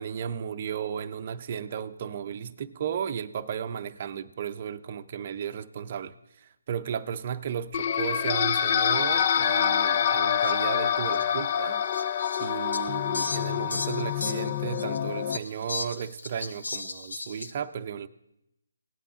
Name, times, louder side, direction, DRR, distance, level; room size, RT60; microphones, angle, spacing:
voice 1, 0.0-11.8 12.4-18.1, right 8 dB, 35° right, 8 dB, 0.6 m, -34 dB
sound 1, 7.7-15.4, left 9 dB, 35° left, 0.4 m, -26 dB
Fowl, 10.4-10.5 11.1-11.2 11.9-15.0 15.3-17.5, left 3 dB, 70° left, 1.0 m, -36 dB
18.0 x 8.9 x 3.7 m, 0.85 s
figure-of-eight pair, 155°, 0 cm